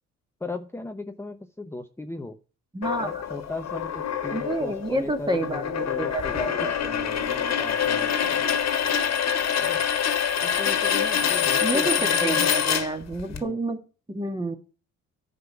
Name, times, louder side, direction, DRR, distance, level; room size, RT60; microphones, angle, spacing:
voice 1, 0.4-2.4 3.0-8.5 9.6-9.8 10.4-12.6 13.3-13.6, left 2 dB, 10° left, 6 dB, 0.8 m, -37 dB
voice 2, 2.7-3.1 4.3-6.3 6.6-6.7 11.6-13.8 14.1-14.6, right 1 dB, 15° right, 4 dB, 1.8 m, -28 dB
sound 1, 2.8-13.4, left 8 dB, 60° left, 1.7 m, -25 dB
10.5 x 5.3 x 7.0 m, 0.35 s
cardioid pair, 90°, 30 cm